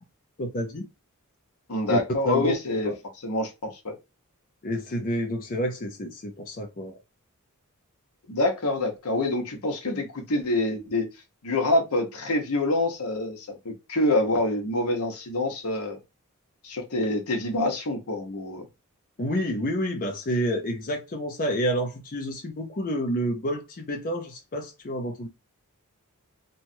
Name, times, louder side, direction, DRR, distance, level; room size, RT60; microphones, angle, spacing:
voice 1, 0.4-0.8 1.9-2.0 2.2-2.5 2.8-2.9 4.6-7.0 19.2-25.3, equal, 40° left, 0.6 m, -29 dB
voice 2, 1.7-2.9 3.2-4.0 8.3-11.1 11.4-16.0 16.6-18.7, left 2 dB, 80° left, 0.9 m, -26 dB
3.0 x 2.4 x 2.6 m
head